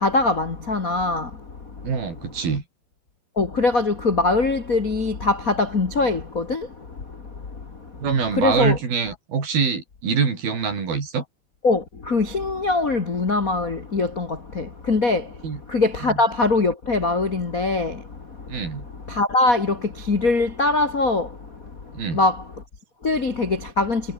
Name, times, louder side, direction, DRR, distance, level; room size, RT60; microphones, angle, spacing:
voice 1, 0.0-1.3 3.4-6.6 8.4-8.8 11.6-11.8 12.1-14.3 14.5-15.2 15.7-17.9 19.2-19.7 20.1-21.3 22.1-22.3 23.0-24.0, left 3 dB, 45° left, 1.1 m, -21 dB
voice 2, 1.8-2.6 8.0-11.2 15.4-15.6 16.1-16.2 18.5-18.9 21.9-22.2, right 5 dB, 55° right, 6.6 m, -24 dB
omnidirectional pair, 5.1 m